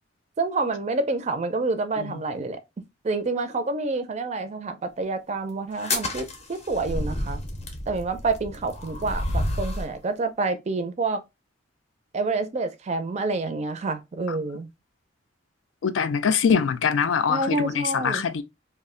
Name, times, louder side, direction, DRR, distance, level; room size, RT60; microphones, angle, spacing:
voice 1, 0.4-2.6 3.0-7.4 7.9-11.2 12.1-14.7 17.3-18.3, right 3 dB, 35° right, 0.4 m, -28 dB
sound 1, 5.7-9.9, left 1 dB, 35° left, 0.6 m, -30 dB
voice 2, 15.8-18.4, left 6 dB, 85° left, 0.4 m, -23 dB
2.3 x 2.1 x 3.6 m
head